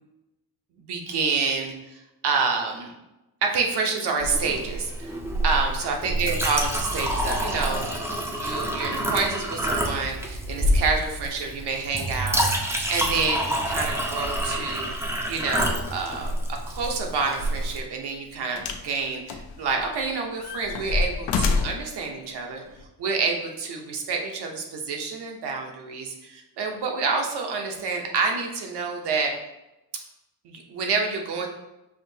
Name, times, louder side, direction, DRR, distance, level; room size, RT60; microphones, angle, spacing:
voice 1, 0.9-2.9 3.4-5.1 5.4-14.9 15.3-22.6 23.0-29.3 30.4-31.5, right 4 dB, 80° right, 2 dB, 0.9 m, -28 dB
Chink clink, 4.2-17.8, equal, 5° right, 0.4 m, -27 dB
sound 1, 17.5-17.6 18.6-18.9 19.3-20.0 20.4-21.9 22.8-22.9, left 4 dB, 85° left, 0.6 m, -27 dB
5.9 x 2.7 x 2.7 m, 0.97 s
wide cardioid pair, 155°, 40 cm